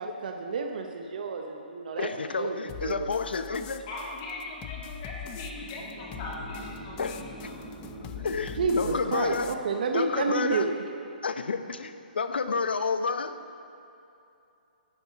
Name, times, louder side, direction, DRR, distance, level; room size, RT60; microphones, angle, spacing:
voice 1, 0.0-2.1 2.4-3.1 8.6-10.7, right 4 dB, 60° right, 4 dB, 0.8 m, -30 dB
voice 2, 2.0-3.8 7.0-7.2 8.0-9.5 9.9-10.7 11.2-13.4, left 4 dB, 85° left, 10 dB, 0.7 m, -30 dB
sound 1, 2.7-9.5, left 8 dB, 20° left, 0.4 m, -43 dB
voice 3, 3.9-7.7, left 2 dB, 35° left, -3 dB, 2.0 m, -40 dB
sound 2, 5.1-10.0, right 1 dB, 5° right, 0.8 m, -45 dB
10.5 x 10.0 x 5.2 m, 2.7 s
hypercardioid pair, 150°, 5 cm